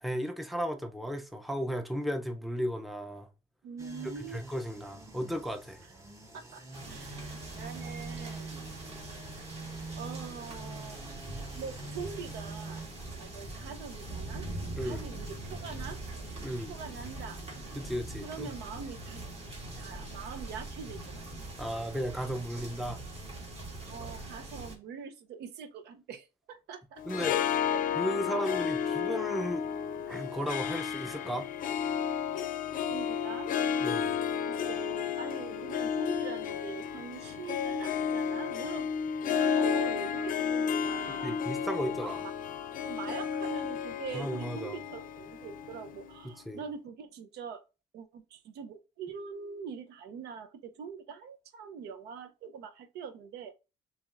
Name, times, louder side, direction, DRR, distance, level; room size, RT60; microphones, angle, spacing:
voice 1, 0.0-3.3 4.3-5.8 14.8-15.1 16.4-16.7 17.7-18.5 21.6-23.0 27.1-27.6 28.0-29.8 30.1-31.5 33.8-34.1 41.2-42.2 44.1-44.8 46.5-46.6, equal, ahead, 0.6 m, -35 dB
voice 2, 3.6-4.4 4.7-4.9 6.3-8.7 9.9-11.2 11.6-12.8 13.2-14.5 14.8-16.0 16.7-17.4 18.2-19.2 19.8-21.3 23.9-27.0 27.7-27.9 28.3-28.9 32.9-33.5 34.5-38.9 39.3-41.4 41.9-42.3 42.8-47.6 47.9-53.5, right 6 dB, 80° right, 0.7 m, -43 dB
sound 1, 3.8-12.9, right 3 dB, 20° right, 1.0 m, -45 dB
sound 2, 6.7-24.8, right 2 dB, 40° right, 1.6 m, -42 dB
Harp, 27.0-46.3, left 8 dB, 55° left, 0.5 m, -32 dB
6.9 x 2.9 x 2.5 m
cardioid pair, 110°, 17 cm